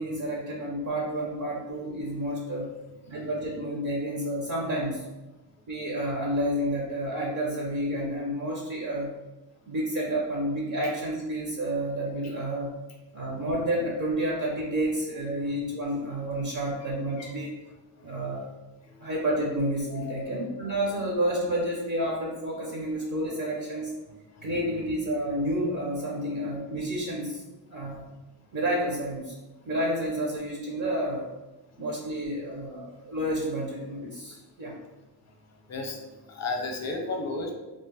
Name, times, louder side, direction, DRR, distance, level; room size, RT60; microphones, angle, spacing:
voice 1, 0.0-2.7 3.1-5.0 5.7-9.1 9.7-12.7 13.1-17.5 18.0-18.4 19.0-23.9 24.4-27.4 27.7-28.0 28.5-29.3 29.6-31.2 31.8-34.7, right 1 dB, 50° right, -2 dB, 0.7 m, -30 dB
voice 2, 19.9-20.3 24.4-24.5 35.7-36.0 36.3-37.5, left 3 dB, 40° left, 2 dB, 0.6 m, -33 dB
2.4 x 2.1 x 3.9 m, 1.1 s
cardioid pair, 115°, 40 cm